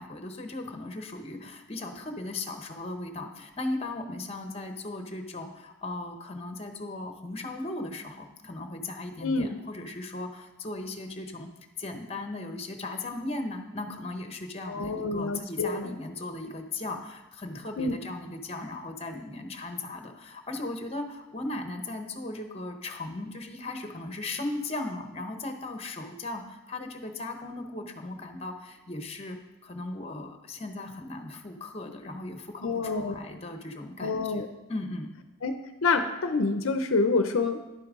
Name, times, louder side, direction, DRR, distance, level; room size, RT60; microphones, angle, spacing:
voice 1, 0.0-11.5 11.8-29.4 29.6-35.1, left 2 dB, 30° left, 5 dB, 0.9 m, -37 dB
voice 2, 9.2-9.6 14.7-16.0 17.8-18.0 32.6-33.2 34.0-34.5 35.4-35.5 35.8-37.6, left 3 dB, 70° left, 8 dB, 0.6 m, -27 dB
11.0 x 8.5 x 3.7 m, 0.99 s
head